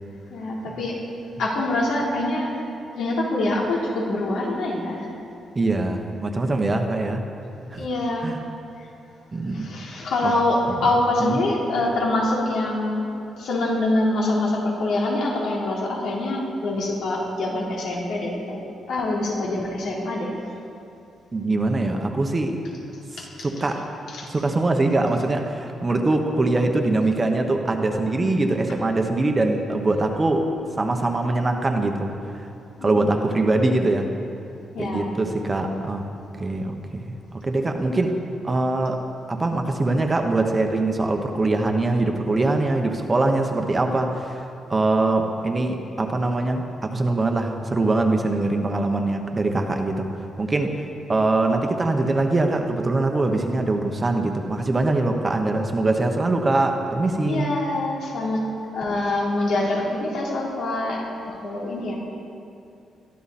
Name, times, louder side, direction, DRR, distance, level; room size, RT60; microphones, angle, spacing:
voice 1, 0.3-1.0 1.4-2.5 2.9-5.1 7.8-8.3 9.5-13.0 13.4-18.6 18.9-20.3 23.2-23.5 24.1-24.3 32.8-33.5 34.7-35.1 57.2-58.4 58.7-61.0 61.4-61.9, left 2 dB, 75° left, -4 dB, 3.7 m, -25 dB
voice 2, 5.5-7.2 7.7-7.9 8.2-8.4 9.3-9.7 10.2-10.3 11.2-11.4 21.3-22.6 23.4-23.8 24.3-30.5 30.8-32.1 32.8-34.1 34.8-36.1 36.4-38.2 38.4-39.0 39.3-44.4 44.7-50.1 50.4-50.8 51.1-57.5, right 2 dB, 20° right, 4 dB, 1.1 m, -23 dB
22.5 x 13.0 x 4.3 m, 2.6 s
cardioid pair, 160°, 0 cm